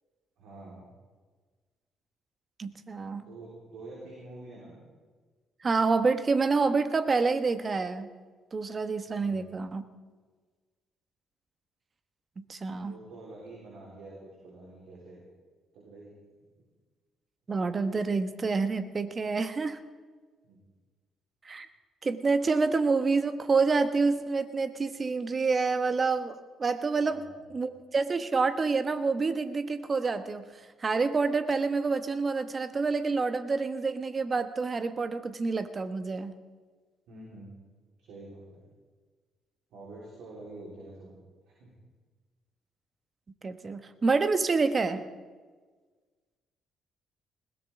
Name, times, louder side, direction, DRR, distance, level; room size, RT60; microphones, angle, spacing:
voice 1, 0.4-0.8 3.2-4.7 9.1-9.5 12.8-15.2 15.7-16.1 16.4-16.5 20.4-20.6 27.0-27.5 37.1-37.5 38.0-38.6 39.7-41.2 41.5-41.7, right 2 dB, 70° right, -5 dB, 3.8 m, -47 dB
voice 2, 2.6-3.2 5.6-8.1 8.5-9.8 12.4-12.9 17.5-19.8 21.4-21.7 22.0-30.4 30.8-36.3 43.4-45.0, right 4 dB, 40° right, 10 dB, 1.1 m, -28 dB
20.5 x 18.0 x 3.7 m, 1.5 s
hypercardioid pair, 50°, 0 cm